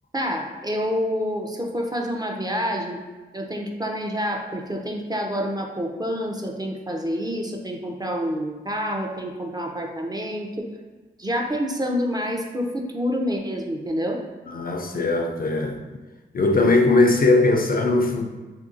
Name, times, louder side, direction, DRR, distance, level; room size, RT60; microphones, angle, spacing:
voice 1, 0.1-3.0 3.3-10.7 11.2-14.2, equal, 20° right, 1 dB, 0.5 m, -27 dB
voice 2, 14.5-15.8 16.3-18.3, left 2 dB, 50° left, 3 dB, 0.4 m, -20 dB
2.7 x 2.6 x 3.8 m, 1.3 s
cardioid pair, 60°, 19 cm